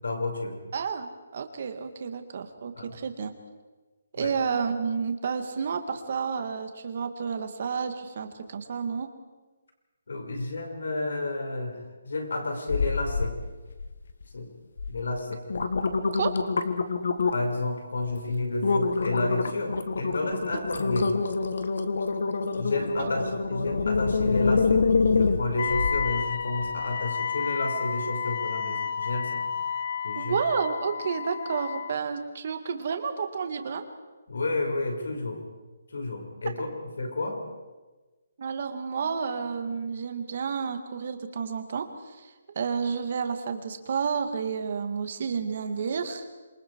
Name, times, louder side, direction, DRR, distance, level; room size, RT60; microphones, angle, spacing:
voice 1, 0.0-0.6 2.8-2.9 4.2-4.3 10.1-13.3 14.3-14.5 14.9-15.4 17.3-21.2 22.6-24.8 25.1-29.4 30.0-30.4 34.3-35.4 35.9-36.7 37.0-37.4, left 2 dB, 80° left, 3 dB, 5.6 m, -31 dB
voice 2, 0.7-3.3 4.1-9.1 16.1-16.3 20.5-20.6 23.0-23.1 30.1-33.8 38.4-46.2, right 6 dB, 40° right, 7 dB, 2.1 m, -30 dB
sound 1, 12.7-13.3 13.7-14.2 14.8-14.9 15.3-17.6 18.0-18.2 18.6-26.1 26.6-26.7, left 4 dB, 65° left, 1.7 m, -26 dB
Wind instrument woodwind instrument, 25.6-32.0, left 6 dB, 40° left, 0.6 m, -31 dB
27.5 x 23.5 x 4.8 m, 1.2 s
hypercardioid pair, 175°, 0 cm